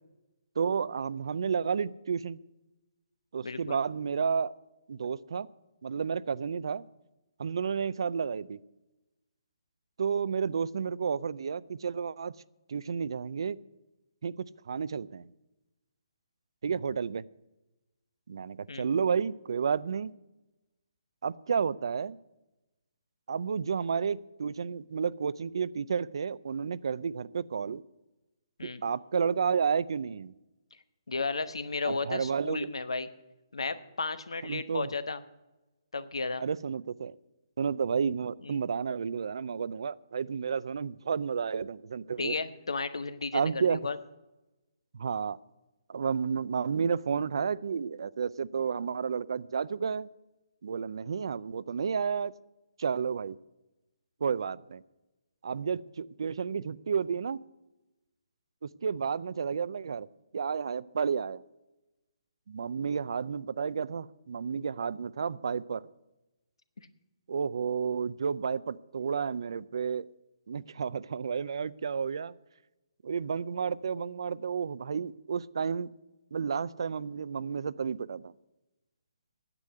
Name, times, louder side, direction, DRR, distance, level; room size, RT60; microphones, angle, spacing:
voice 1, 0.6-2.4 3.3-4.5 4.9-5.5 5.8-6.8 7.4-8.6 10.0-12.3 12.7-13.6 14.2-15.2 16.6-17.2 18.3-20.1 21.2-22.2 23.3-27.8 28.6-30.3 31.8-32.7 34.4-34.9 36.4-37.1 37.6-42.3 43.3-43.8 44.9-45.4 45.9-50.1 50.6-52.3 52.8-53.4 54.2-54.8 55.4-57.4 58.6-60.1 60.3-61.4 62.5-65.9 67.3-70.1 70.5-72.3 73.0-75.9 76.3-78.3, right 6 dB, 65° right, 20 dB, 0.5 m, -31 dB
voice 2, 3.4-3.8 18.7-18.9 28.6-28.8 31.1-33.1 33.5-35.2 35.9-36.4 38.4-38.6 42.2-44.0, left 4 dB, 90° left, 13 dB, 1.1 m, -34 dB
9.9 x 8.3 x 9.6 m, 1.0 s
hypercardioid pair, 160°, 3 cm